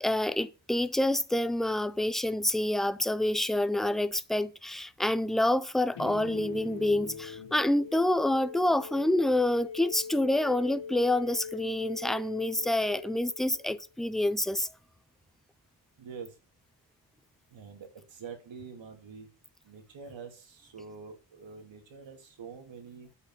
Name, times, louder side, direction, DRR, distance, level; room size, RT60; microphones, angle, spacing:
voice 1, 0.0-14.7, left 1 dB, ahead, 0.4 m, -27 dB
sound 1, 5.9-13.9, left 6 dB, 65° left, 2.8 m, -42 dB
voice 2, 16.0-16.4 17.5-19.3 19.6-23.1, right 5 dB, 80° right, 2.8 m, -46 dB
8.4 x 5.6 x 6.1 m
wide cardioid pair, 130°, 45 cm